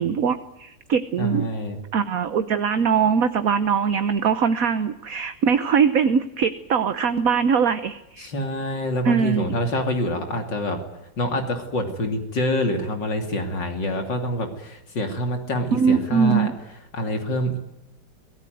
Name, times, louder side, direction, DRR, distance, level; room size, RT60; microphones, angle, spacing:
voice 1, 0.0-1.5 1.9-8.3 9.0-9.6 15.7-16.5, right 6 dB, 55° right, 11 dB, 1.3 m, -21 dB
voice 2, 1.2-1.8 8.2-10.8 11.2-16.5 16.9-17.6, equal, 75° left, 5 dB, 3.5 m, -26 dB
25.0 x 18.0 x 9.4 m, 0.87 s
omnidirectional pair, 2.0 m